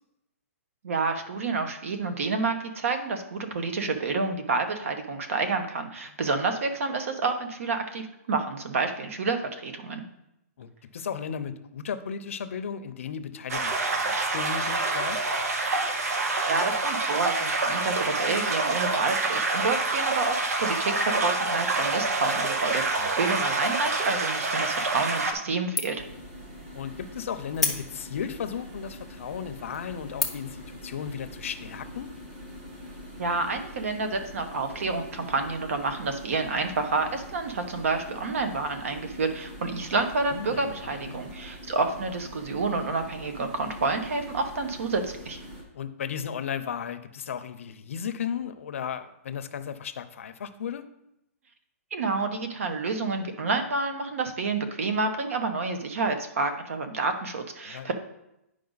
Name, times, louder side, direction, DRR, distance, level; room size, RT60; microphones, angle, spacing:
voice 1, 0.8-10.0 16.5-26.0 33.2-45.4 51.9-57.9, right 3 dB, 60° right, 7 dB, 1.1 m, -29 dB
voice 2, 10.6-15.2 23.0-23.1 26.7-32.1 40.3-41.2 45.7-50.8 57.7-57.9, left 7 dB, 55° left, 10 dB, 0.7 m, -35 dB
sound 1, 13.5-25.3, right 3 dB, 80° right, 1.2 m, -27 dB
sound 2, 25.2-25.5 25.8-26.2 26.6-26.7 27.5-28.3 28.9-29.0 29.5-29.8 30.2-30.6, left 4 dB, ahead, 0.5 m, -30 dB
sound 3, 26.0-45.6, equal, 30° right, 1.8 m, -43 dB
9.6 x 5.0 x 4.0 m, 0.85 s
hypercardioid pair, 175°, 8 cm